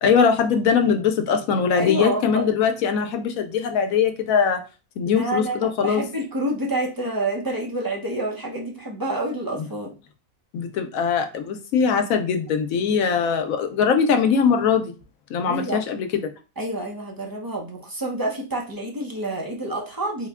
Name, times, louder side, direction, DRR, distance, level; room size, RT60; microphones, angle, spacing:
voice 1, 0.0-4.6 5.0-6.0 10.5-14.9 15.3-16.1, left 6 dB, 90° left, 6 dB, 1.1 m, -21 dB
voice 2, 1.8-2.4 5.1-9.9 15.5-15.8 16.6-20.3, right 1 dB, 25° right, -1 dB, 0.5 m, -28 dB
3.9 x 2.1 x 3.5 m, 0.32 s
omnidirectional pair, 1.4 m